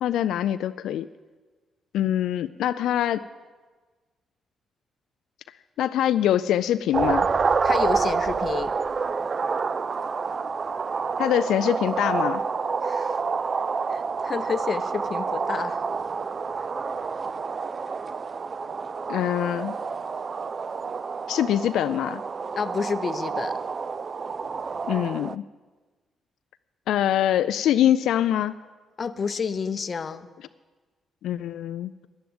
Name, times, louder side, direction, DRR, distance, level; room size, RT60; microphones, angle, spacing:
voice 1, 0.0-1.1 1.9-3.2 5.8-7.3 11.2-12.4 19.1-19.7 21.3-22.2 24.9-25.4 26.9-28.5 31.2-31.9, left 11 dB, 85° left, 11 dB, 0.3 m, -24 dB
sound 1, 6.9-25.4, right 5 dB, 40° right, 0.3 m, -28 dB
voice 2, 7.6-8.7 12.8-13.2 13.9-15.9 22.5-23.6 29.0-30.3, left 5 dB, 40° left, 12 dB, 0.6 m, -30 dB
10.5 x 10.5 x 7.9 m, 1.3 s
cardioid pair, 110°, 0 cm